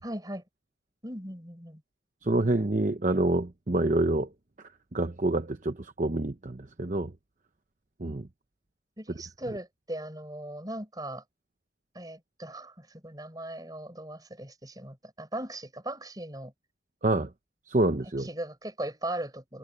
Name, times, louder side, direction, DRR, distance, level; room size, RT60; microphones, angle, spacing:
voice 1, 0.0-0.4 1.0-1.8 9.0-11.2 11.9-16.5 18.2-19.6, right 1 dB, 20° right, 4.5 m, -38 dB
voice 2, 2.2-4.3 4.9-7.1 8.0-8.3 17.0-17.3 17.7-18.3, right 2 dB, 40° right, 0.8 m, -27 dB
head